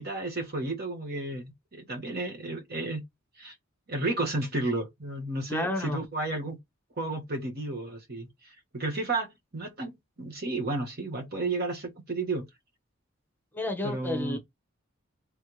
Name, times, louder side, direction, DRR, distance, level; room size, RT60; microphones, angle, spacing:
voice 1, 0.0-3.0 3.4-3.5 3.9-6.6 7.0-8.3 8.7-9.9 10.2-12.4 13.8-14.4, right 2 dB, 50° right, 1.5 m, -32 dB
voice 2, 5.5-6.0 13.5-14.4, left 1 dB, 10° left, 1.0 m, -31 dB
4.3 x 3.4 x 3.2 m
head